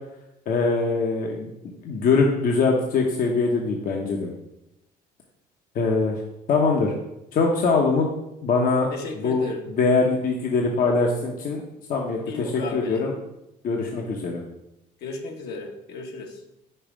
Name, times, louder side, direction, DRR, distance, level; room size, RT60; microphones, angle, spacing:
voice 1, 0.5-1.5 1.8-4.3 5.7-6.2 6.5-6.9 7.3-8.1 8.4-8.9 9.2-11.6 11.9-13.1 13.6-14.4, left 4 dB, 55° left, 1 dB, 0.8 m, -22 dB
voice 2, 8.9-9.6 12.2-13.0 15.0-16.4, left 3 dB, 75° left, 2 dB, 1.2 m, -34 dB
5.5 x 4.3 x 5.0 m, 0.87 s
cardioid pair, 110°, 17 cm